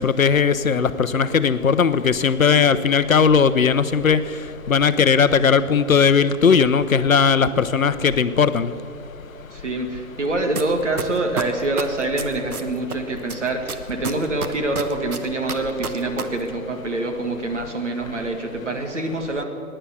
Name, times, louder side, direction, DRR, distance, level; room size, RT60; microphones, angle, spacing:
voice 1, 0.0-4.2 4.7-8.7, left 6 dB, 65° left, 13 dB, 0.7 m, -18 dB
voice 2, 9.5-19.4, right 2 dB, 50° right, 4 dB, 1.9 m, -25 dB
sound 1, 10.6-10.7 11.0-12.9 13.3-16.2 16.5-16.6, right 5 dB, 75° right, 1.3 m, -28 dB
16.0 x 10.0 x 7.1 m, 2.7 s
hypercardioid pair, 175°, 44 cm